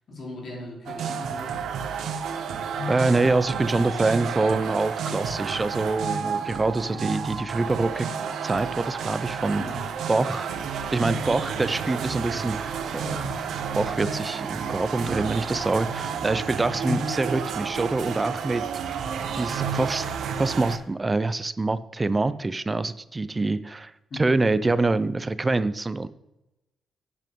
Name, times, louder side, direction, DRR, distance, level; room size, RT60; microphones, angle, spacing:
voice 1, 0.1-1.5 2.8-3.0 6.2-6.4 6.9-7.0 9.5-9.9 16.9-17.1 24.1-24.2, left 3 dB, 45° left, -2 dB, 3.2 m, -35 dB
sound 1, 0.9-20.8, right 6 dB, 75° right, 0.9 m, -31 dB
voice 2, 2.9-8.1 8.4-9.6 10.1-13.3 13.8-18.6 18.9-19.0 19.3-20.1 20.4-26.1, right 3 dB, 15° right, 14 dB, 0.4 m, -25 dB
10.5 x 8.4 x 3.6 m, 0.91 s
cardioid pair, 155°, 0 cm